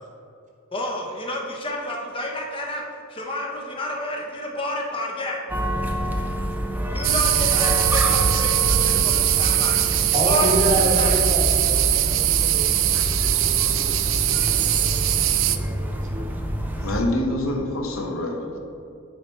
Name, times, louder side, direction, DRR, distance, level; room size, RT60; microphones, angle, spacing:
voice 1, 0.7-2.8 3.1-5.4 6.9-9.8 10.2-11.2, left 1 dB, 25° left, 0 dB, 1.0 m, -30 dB
sound 1, 5.5-17.0, equal, 10° right, 0.5 m, -28 dB
sound 2, 7.0-15.6, right 12 dB, 65° right, 0.4 m, -21 dB
voice 2, 10.1-15.1 15.5-16.2, equal, 35° right, -1 dB, 1.3 m, -29 dB
voice 3, 16.8-18.6, left 1 dB, 75° left, 3 dB, 1.0 m, -26 dB
9.2 x 4.6 x 4.5 m, 2.5 s
head